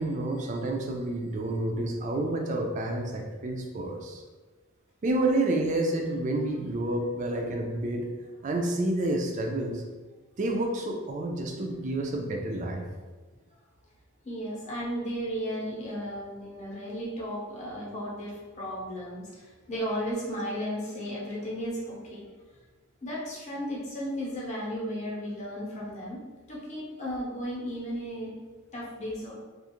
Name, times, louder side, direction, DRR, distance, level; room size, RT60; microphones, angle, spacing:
voice 1, 0.0-4.2 5.0-8.0 8.4-9.8 10.4-12.8, right 2 dB, 35° right, 2 dB, 0.3 m, -29 dB
voice 2, 14.2-22.3 23.0-26.2 26.5-28.3 28.7-29.4, equal, 35° left, -5 dB, 0.7 m, -34 dB
2.4 x 2.3 x 2.9 m, 1.3 s
head